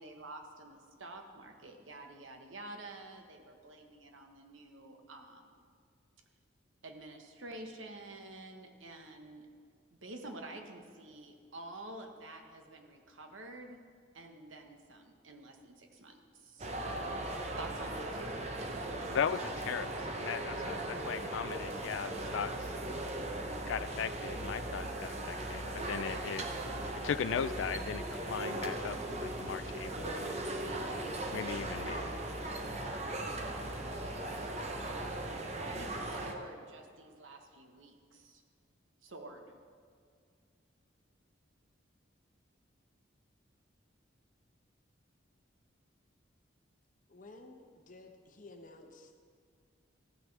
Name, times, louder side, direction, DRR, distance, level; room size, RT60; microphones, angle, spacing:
voice 1, 0.0-5.6 6.8-9.5 10.0-13.8 14.1-16.7 17.6-18.4 35.6-38.4 39.0-39.5, right 2 dB, 90° right, 4 dB, 1.1 m, -49 dB
sound 1, 16.6-36.3, right 1 dB, 35° right, 0.8 m, -38 dB
voice 2, 19.1-19.9 20.2-22.7 23.7-26.5 27.0-30.2 31.3-32.1, left 7 dB, 75° left, 14 dB, 0.3 m, -37 dB
voice 3, 47.1-49.2, left 2 dB, 45° left, 4 dB, 0.9 m, -53 dB
14.5 x 9.3 x 3.3 m, 2.2 s
head